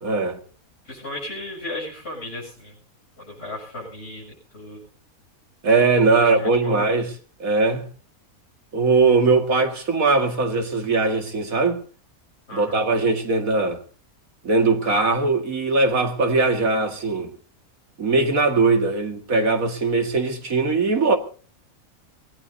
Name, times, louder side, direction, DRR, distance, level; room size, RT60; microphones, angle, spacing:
voice 1, 0.0-0.4 5.6-7.1 7.4-7.9 8.7-11.8 12.5-13.8 14.4-17.3 18.0-21.2, right 3 dB, 70° right, 2.5 m, -20 dB
voice 2, 0.8-2.7 3.2-4.9 6.1-6.8 12.5-12.8, left 1 dB, 45° left, 7.8 m, -35 dB
24.0 x 18.0 x 2.8 m
omnidirectional pair, 1.5 m